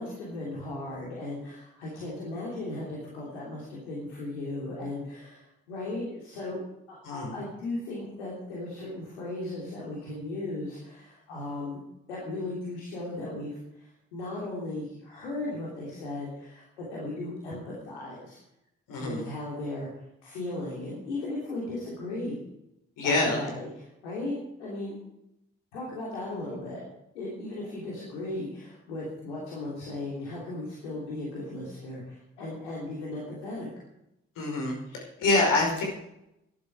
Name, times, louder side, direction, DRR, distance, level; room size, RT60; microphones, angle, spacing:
voice 1, 0.0-6.6 6.9-11.8 12.1-18.4 19.0-19.9 20.2-22.4 23.0-25.0 25.7-26.9 27.1-33.7, left 2 dB, 85° left, -5 dB, 3.2 m, -36 dB
voice 2, 18.9-19.2 23.0-23.4 34.4-35.8, left 2 dB, 70° left, 0 dB, 5.4 m, -26 dB
17.0 x 12.0 x 4.9 m, 0.83 s
hypercardioid pair, 40°, 33 cm